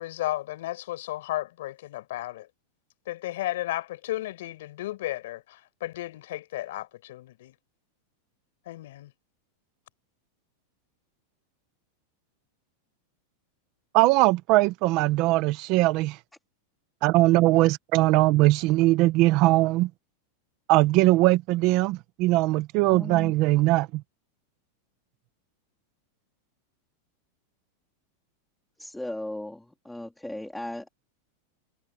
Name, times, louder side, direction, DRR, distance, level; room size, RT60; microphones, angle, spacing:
voice 1, 0.0-2.5 3.1-7.5 8.7-9.1, left 15 dB, 60° left, 5.1 m, -34 dB
voice 2, 13.9-16.2 17.0-19.9 20.7-24.0, right 19 dB, 30° right, 0.7 m, -21 dB
voice 3, 22.9-23.3 28.8-30.9, left 1 dB, ahead, 2.4 m, -36 dB
supercardioid pair, 180°, 0 cm